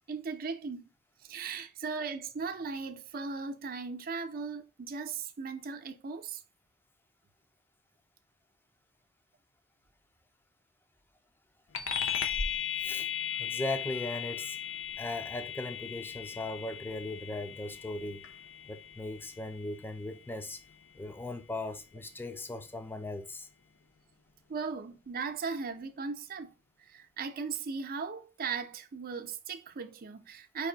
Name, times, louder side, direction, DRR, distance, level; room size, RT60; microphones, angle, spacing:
voice 1, 0.1-0.9 1.3-6.4 24.5-26.5 26.9-30.7, right 5 dB, 45° right, 0.5 m, -37 dB
sound 1, 11.7-21.6, left 8 dB, 65° left, 0.6 m, -37 dB
voice 2, 12.8-13.1 13.4-14.6 15.0-18.3 18.7-20.6 21.0-23.5, left 2 dB, 10° left, 0.4 m, -38 dB
4.8 x 2.6 x 3.8 m
head